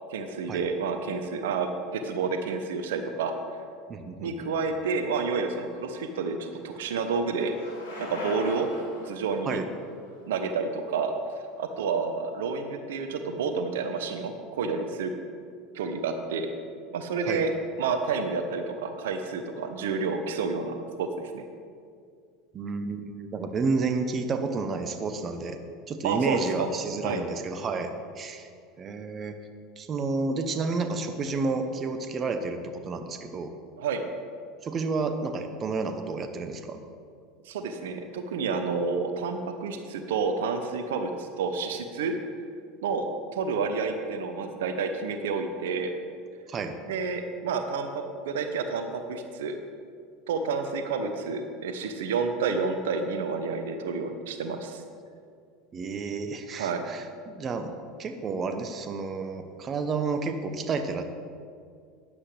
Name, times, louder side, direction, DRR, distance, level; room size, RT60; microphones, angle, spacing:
voice 1, 0.1-3.3 4.2-7.5 8.0-8.7 9.0-9.6 10.3-11.2 11.6-15.1 15.7-16.5 16.9-17.5 17.8-21.1 21.3-21.4 26.0-26.7 27.0-27.2 33.8-34.0 37.5-42.2 42.8-45.9 46.9-49.6 50.3-54.8 56.6-56.8, right 4 dB, 75° right, 7 dB, 0.9 m, -29 dB
voice 2, 3.9-4.3 9.4-9.7 17.3-17.5 22.5-25.6 25.9-28.5 28.8-29.4 29.8-33.5 34.6-36.8 46.5-46.8 55.7-57.7 58.0-61.0, right 4 dB, 35° right, 7 dB, 0.9 m, -30 dB
Bicycle, 5.6-11.6, left 2 dB, 90° left, 2.9 m, -42 dB
12.0 x 10.0 x 3.4 m, 2.2 s
hypercardioid pair, 80°, 0 cm